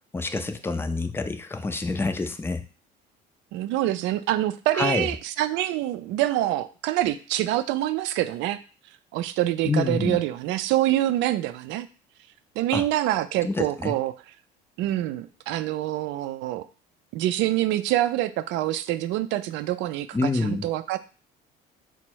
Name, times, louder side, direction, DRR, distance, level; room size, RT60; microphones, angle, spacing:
voice 1, 0.1-2.6 4.7-5.1 9.6-10.2 12.7-12.8 13.4-13.9 20.1-20.7, left 3 dB, 10° left, 7 dB, 0.4 m, -27 dB
voice 2, 3.5-8.6 9.1-11.9 12.6-14.1 14.8-16.7 17.1-21.0, right 14 dB, 75° right, 13 dB, 0.4 m, -26 dB
4.0 x 2.1 x 4.5 m, 0.36 s
cardioid pair, 105°, 19 cm